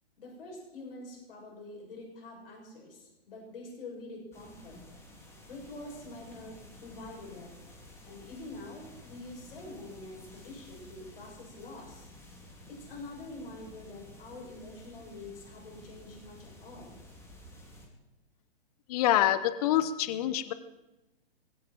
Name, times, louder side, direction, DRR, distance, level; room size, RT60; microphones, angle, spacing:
voice 1, 0.2-4.8 5.5-7.5 8.0-12.1 12.7-17.0, left 2 dB, 60° left, -1 dB, 7.3 m, -46 dB
sound 1, 4.3-17.9, left 1 dB, 10° left, 3.1 m, -52 dB
voice 2, 18.9-20.5, left 12 dB, 35° left, 14 dB, 0.9 m, -26 dB
20.0 x 16.0 x 4.6 m, 1.0 s
figure-of-eight pair, 120°, 32 cm